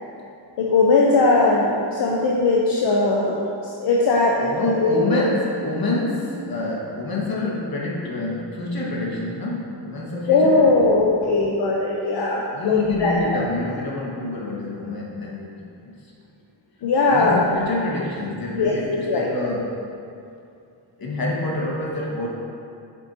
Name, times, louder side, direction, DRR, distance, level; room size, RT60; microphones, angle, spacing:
voice 1, 0.6-3.4 3.8-5.2 10.3-13.4 16.8-17.5 18.5-19.5, left 3 dB, 70° left, -3 dB, 0.9 m, -19 dB
voice 2, 4.4-10.7 12.5-16.0 17.0-19.8 21.0-22.3, left 2 dB, 55° left, -3 dB, 1.8 m, -27 dB
9.2 x 7.4 x 2.9 m, 2.5 s
cardioid pair, 105°, 43 cm